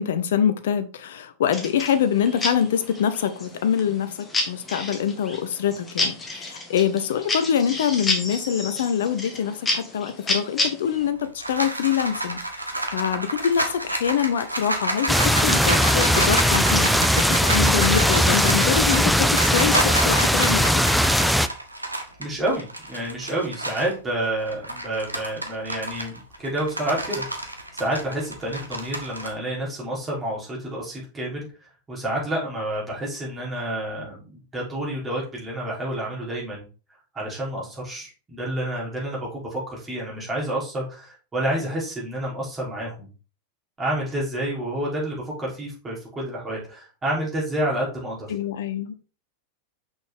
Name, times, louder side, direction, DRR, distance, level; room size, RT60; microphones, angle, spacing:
voice 1, 0.0-4.1 4.5-12.4 12.9-20.6 48.3-48.9, left 8 dB, 60° left, 0.8 m, -25 dB
sound 1, 1.5-11.1, left 2 dB, 15° left, 1.7 m, -30 dB
sound 2, 11.0-23.9 24.4-29.3, right 1 dB, 85° right, 1.0 m, -30 dB
sound 3, 15.1-21.5, equal, ahead, 0.4 m, -19 dB
voice 2, 22.2-27.2 27.7-31.5 31.9-36.6 37.1-43.1 43.8-48.3, right 1 dB, 15° right, 3.3 m, -29 dB
6.1 x 5.4 x 3.5 m
figure-of-eight pair, 90°, 0 cm